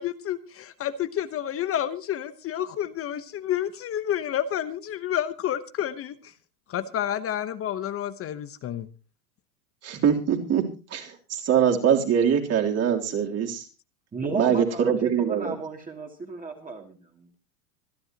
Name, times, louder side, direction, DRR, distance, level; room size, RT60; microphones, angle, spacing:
voice 1, 0.0-6.2 6.7-8.9, left 10 dB, 30° left, 12 dB, 1.0 m, -29 dB
voice 2, 9.8-10.6 10.9-13.6 14.3-15.5, right 8 dB, 35° right, 2 dB, 3.4 m, -23 dB
voice 3, 14.1-14.9 15.2-17.4, right 3 dB, 20° right, 1 dB, 2.6 m, -34 dB
26.0 x 11.0 x 3.0 m, 0.32 s
hypercardioid pair, 110°, 43 cm